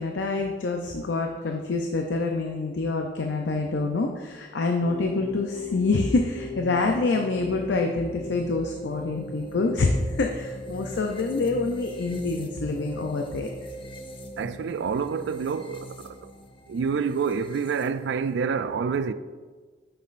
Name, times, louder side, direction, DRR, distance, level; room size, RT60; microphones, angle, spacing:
voice 1, 0.0-13.5, left 3 dB, 80° left, 0.5 m, -26 dB
sound 1, 4.8-18.3, left 1 dB, 30° left, 0.6 m, -39 dB
voice 2, 14.4-16.3 16.7-19.1, right 6 dB, 75° right, 0.3 m, -28 dB
8.3 x 5.9 x 2.5 m
head